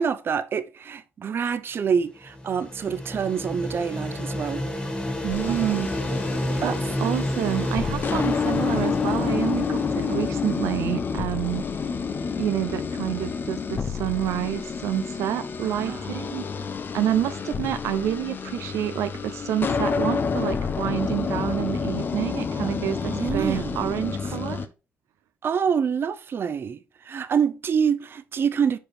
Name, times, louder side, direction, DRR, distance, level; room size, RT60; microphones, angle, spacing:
voice 1, 0.0-4.6 5.5-5.8 6.6-6.7 15.6-16.0 22.6-23.9 25.4-26.8 27.0-28.8, right 7 dB, 50° right, 0.6 m, -26 dB
sound 1, 2.0-10.8, left 1 dB, 20° left, 1.3 m, -31 dB
voice 2, 5.2-5.9 6.6-11.8 12.4-16.7 16.9-24.7, right 12 dB, 90° right, 0.4 m, -28 dB
sound 2, 5.3-24.7, left 5 dB, 45° left, 0.7 m, -29 dB
5.4 x 4.5 x 4.7 m
cardioid pair, 85°, 5 cm